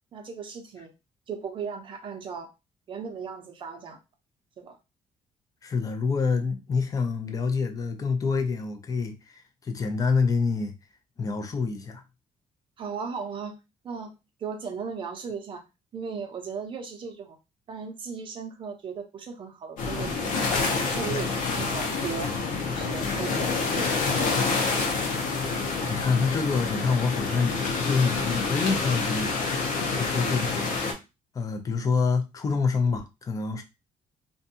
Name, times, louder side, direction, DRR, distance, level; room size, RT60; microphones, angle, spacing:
voice 1, 0.1-0.9 1.3-2.5 2.9-4.0 4.6-4.8 12.8-13.5 13.8-14.1 14.4-15.6 15.9-17.4 17.7-20.4 20.8-22.3 22.7-24.4 29.9-30.1, right 6 dB, 35° right, 0.6 m, -36 dB
voice 2, 5.6-10.8 11.2-12.0 25.9-29.3 30.0-30.7 31.3-33.6, left 4 dB, 25° left, 0.4 m, -27 dB
sound 1, 19.8-30.9, left 4 dB, 75° left, 0.7 m, -27 dB
2.5 x 2.3 x 2.7 m
cardioid pair, 165°, 14 cm